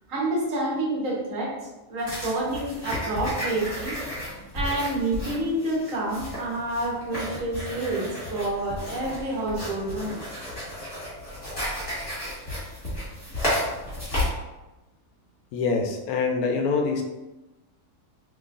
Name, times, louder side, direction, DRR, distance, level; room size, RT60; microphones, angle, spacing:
voice 1, 0.1-1.5 1.9-4.0 4.5-10.2, right 1 dB, 65° right, -4 dB, 1.4 m, -28 dB
sound 1, 2.0-14.3, left 1 dB, 25° left, 1.5 m, -33 dB
voice 2, 15.5-17.0, left 4 dB, 85° left, 4 dB, 1.0 m, -25 dB
3.8 x 3.0 x 2.5 m, 1.0 s
omnidirectional pair, 1.5 m